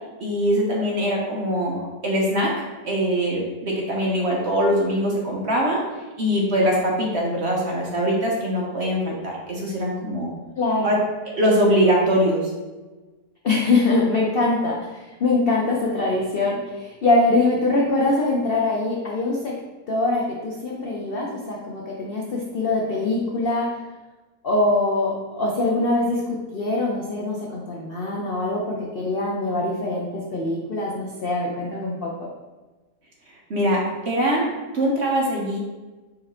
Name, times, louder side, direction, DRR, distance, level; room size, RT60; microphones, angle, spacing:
voice 1, 0.2-1.8 2.0-2.5 2.8-5.8 6.2-10.3 10.8-11.0 11.3-12.5 33.5-34.4 34.7-35.6, equal, 55° right, -2 dB, 0.9 m, -22 dB
voice 2, 10.6-11.0 13.4-19.5 19.9-23.8 24.4-32.3, left 2 dB, 65° left, -3 dB, 0.5 m, -23 dB
4.7 x 3.1 x 3.7 m, 1.2 s
omnidirectional pair, 1.7 m